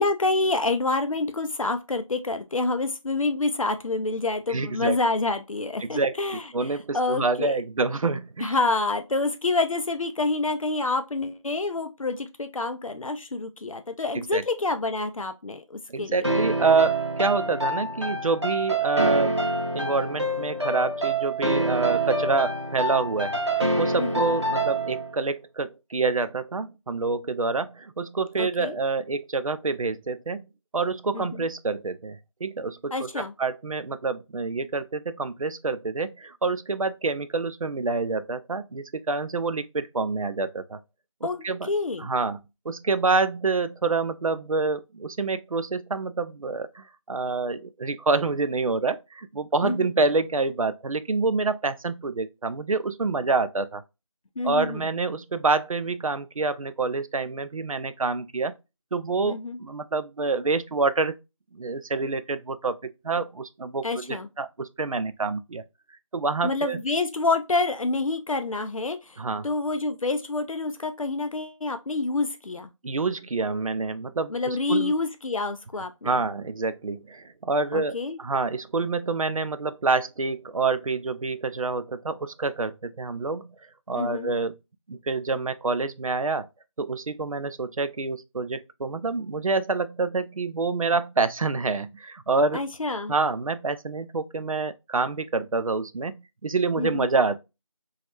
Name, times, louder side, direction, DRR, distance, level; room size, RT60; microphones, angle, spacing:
voice 1, 0.0-7.6 8.4-16.3 24.0-24.4 28.4-28.8 31.1-31.5 32.9-33.3 41.2-42.1 49.6-49.9 54.4-54.8 59.2-59.6 63.8-64.3 66.4-69.2 69.4-72.7 74.3-76.2 77.7-78.2 84.0-84.3 92.5-93.1 96.8-97.1, left 3 dB, 80° left, 0.4 m, -27 dB
voice 2, 4.5-5.0 5.8-6.2 6.5-8.6 14.1-14.4 15.9-19.4 19.7-30.5 30.7-40.8 41.4-41.7 42.0-42.4 42.7-53.8 54.4-58.5 58.9-61.1 61.5-65.6 66.1-66.8 69.2-69.5 72.8-74.9 76.0-83.5 83.9-84.6 84.9-86.5 86.8-92.6 93.1-97.4, right 3 dB, 90° right, 0.4 m, -27 dB
sound 1, 16.2-25.1, right 2 dB, 55° right, 0.7 m, -26 dB
3.1 x 2.3 x 2.8 m
figure-of-eight pair, 180°, 17 cm